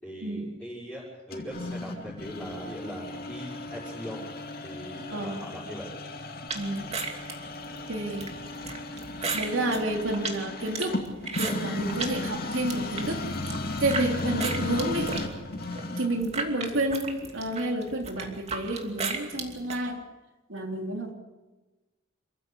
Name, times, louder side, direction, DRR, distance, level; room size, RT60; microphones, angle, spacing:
voice 1, 0.0-4.2 4.6-5.9 12.2-12.4 16.7-16.8, equal, 5° left, -9 dB, 6.1 m, -40 dB
sound 1, 1.3-16.3, left 2 dB, 50° left, 2.5 m, -35 dB
voice 2, 5.1-5.4 6.5-6.9 7.9-8.3 9.3-11.0 11.4-13.2 13.8-15.2 16.0-20.0 20.5-21.1, right 1 dB, 80° right, 2 dB, 3.5 m, -30 dB
sound 2, 6.5-12.2 12.5-14.1 14.4-19.8, right 4 dB, 30° right, 2.7 m, -35 dB
27.5 x 15.0 x 8.2 m, 1.1 s
head